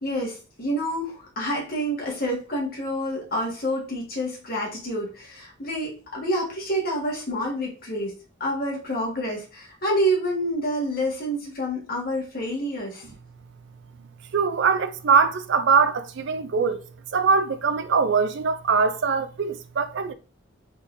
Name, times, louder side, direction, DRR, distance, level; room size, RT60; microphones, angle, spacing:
voice 1, 0.0-8.1 8.4-13.0, equal, 45° left, 1.6 m, -28 dB
voice 2, 14.3-16.8 17.1-20.1, right 5 dB, 60° right, 0.4 m, -22 dB
3.8 x 3.7 x 2.6 m
head